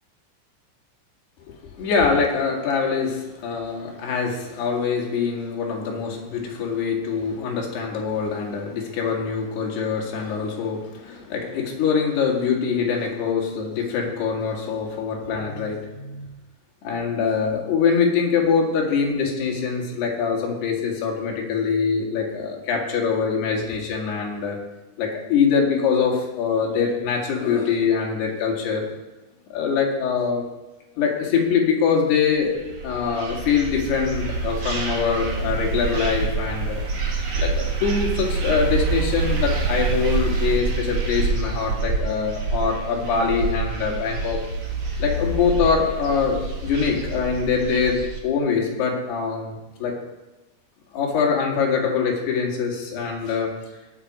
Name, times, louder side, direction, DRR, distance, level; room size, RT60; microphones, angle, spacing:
voice 1, 1.8-16.3 16.8-24.6 25.0-28.9 29.5-30.4 31.0-32.6 32.8-36.8 37.4-44.4 45.0-49.5 49.8-49.9 50.9-53.5, left 6 dB, 60° left, -1 dB, 4.0 m, -23 dB
sound 1, 32.5-48.2, right 4 dB, 70° right, 1.3 m, -26 dB
19.0 x 7.9 x 5.0 m, 1.1 s
omnidirectional pair, 5.5 m